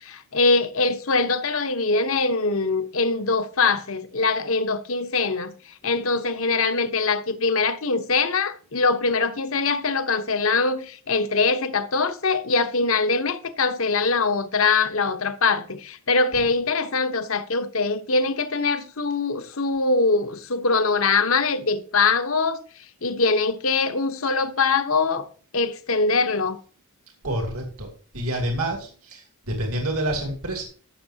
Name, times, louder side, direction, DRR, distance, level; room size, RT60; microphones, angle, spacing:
voice 1, 0.0-5.5 5.8-22.6 23.0-25.3 25.5-26.6, left 4 dB, 70° left, 1.1 m, -23 dB
voice 2, 27.2-30.6, right 1 dB, 80° right, 2.5 m, -28 dB
14.5 x 6.5 x 2.9 m
head